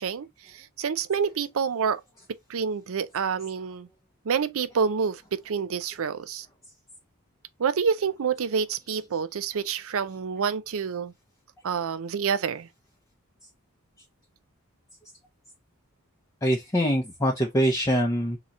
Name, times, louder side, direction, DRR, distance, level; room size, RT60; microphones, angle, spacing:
voice 1, 0.0-2.0 2.5-3.9 4.2-6.5 7.6-11.1 11.6-12.7, right 6 dB, 65° right, 0.5 m, -28 dB
voice 2, 16.4-18.4, equal, 15° left, 0.7 m, -24 dB
3.8 x 2.9 x 4.1 m
head